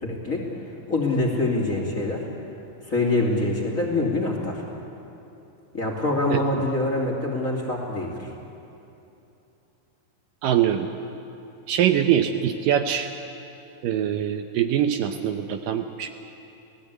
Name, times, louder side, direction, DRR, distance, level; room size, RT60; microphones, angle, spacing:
voice 1, 0.0-0.5 0.9-2.2 2.9-4.6 5.7-8.3, left 2 dB, 25° left, -1 dB, 2.8 m, -25 dB
voice 2, 10.4-10.9 11.7-13.1 13.8-16.1, right 10 dB, 75° right, 6 dB, 2.3 m, -23 dB
29.0 x 17.5 x 8.3 m, 2.8 s
omnidirectional pair, 4.3 m